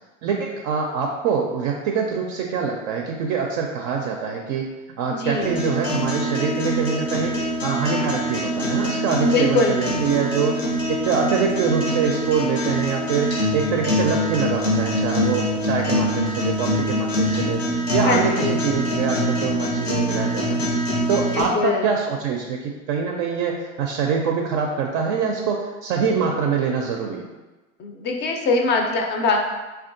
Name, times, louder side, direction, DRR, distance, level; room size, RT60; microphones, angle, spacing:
voice 1, 0.2-4.7 5.0-10.5 10.9-17.6 17.9-20.6 21.1-27.3, right 6 dB, 55° right, 1 dB, 0.4 m, -24 dB
voice 2, 5.1-5.5 7.3-7.4 9.2-9.9 18.0-18.6 21.3-21.9 27.8-29.4, left 3 dB, 30° left, 2 dB, 0.4 m, -22 dB
sound 1, 5.4-21.4, equal, 90° left, 0.8 m, -24 dB
3.4 x 2.3 x 2.5 m, 1.2 s
hypercardioid pair, 95°, 37 cm